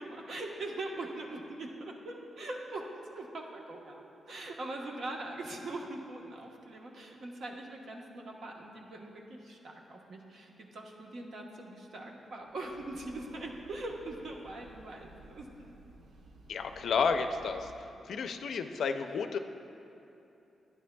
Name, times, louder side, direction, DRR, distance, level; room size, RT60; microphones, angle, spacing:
voice 1, 0.0-15.5, right 2 dB, 65° right, 0 dB, 1.0 m, -42 dB
Breathing / Train, 12.5-18.0, right 2 dB, 90° right, 0.7 m, -56 dB
voice 2, 16.5-17.7 18.1-19.4, left 5 dB, 70° left, 8 dB, 0.4 m, -31 dB
12.0 x 9.8 x 2.2 m, 2.9 s
cardioid pair, 115°, 0 cm